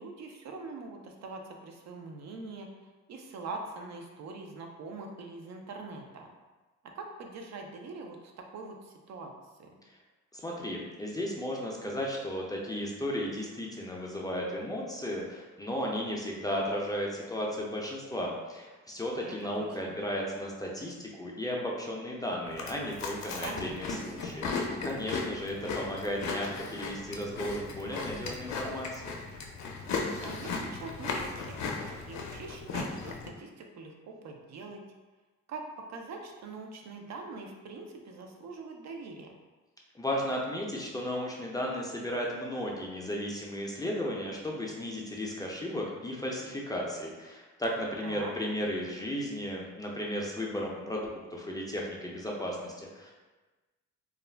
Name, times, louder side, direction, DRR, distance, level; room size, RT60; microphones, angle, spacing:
voice 1, 0.0-2.7 3.1-6.3 6.9-9.3 9.6-9.7 19.2-20.0 23.4-24.1 30.2-31.8 32.1-34.8 35.5-35.6 35.9-39.3 48.0-48.3, right 3 dB, 60° right, 2 dB, 0.5 m, -43 dB
voice 2, 10.3-24.5 24.8-29.2 39.9-53.1, equal, 15° left, -2 dB, 0.4 m, -35 dB
Chewing mastication, 22.5-33.3, left 4 dB, 65° left, 0.5 m, -36 dB
2.4 x 2.1 x 3.2 m, 1.2 s
cardioid pair, 90°, 30 cm